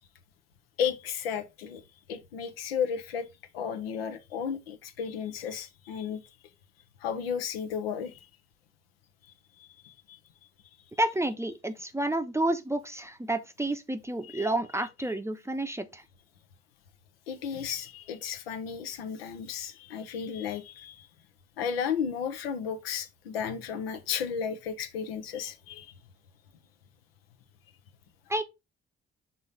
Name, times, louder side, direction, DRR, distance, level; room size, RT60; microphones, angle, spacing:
voice 1, 0.8-1.8 2.1-3.3 3.5-6.2 7.0-8.3 9.6-10.2 14.2-14.5 17.3-21.1 21.6-25.9, left 7 dB, 80° left, 0.7 m, -34 dB
voice 2, 11.0-16.0 28.3-28.4, right 1 dB, 10° right, 0.7 m, -30 dB
6.3 x 3.7 x 3.9 m
figure-of-eight pair, 40°, 30 cm